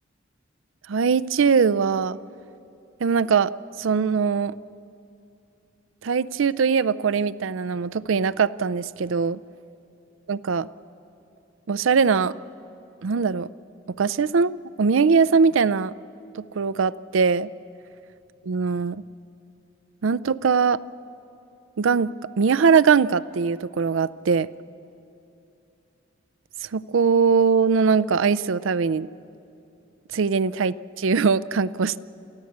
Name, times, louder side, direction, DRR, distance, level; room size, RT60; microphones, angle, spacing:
voice 1, 0.9-2.2 3.0-3.5 3.8-4.5 6.0-9.4 10.3-10.7 11.7-12.3 13.0-13.5 14.0-14.5 14.8-15.9 16.3-17.5 18.4-19.0 20.0-20.8 21.8-24.5 26.7-29.1 30.1-32.0, right 5 dB, 85° right, 18 dB, 0.5 m, -21 dB
28.5 x 14.5 x 8.6 m, 2.7 s
head